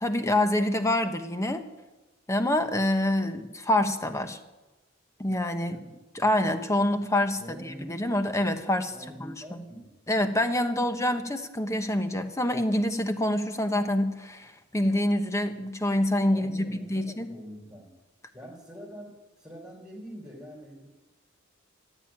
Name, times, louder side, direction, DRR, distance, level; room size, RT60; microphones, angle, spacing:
voice 1, 0.0-1.6 2.3-4.4 5.2-5.8 6.1-8.9 9.2-9.7 10.1-17.3, left 1 dB, 15° left, 8 dB, 1.0 m, -26 dB
voice 2, 5.6-5.9 7.4-7.9 8.9-9.9 16.3-17.9 18.3-19.1 19.4-20.9, equal, 5° right, -6 dB, 4.2 m, -44 dB
15.0 x 9.0 x 9.0 m, 1.1 s
head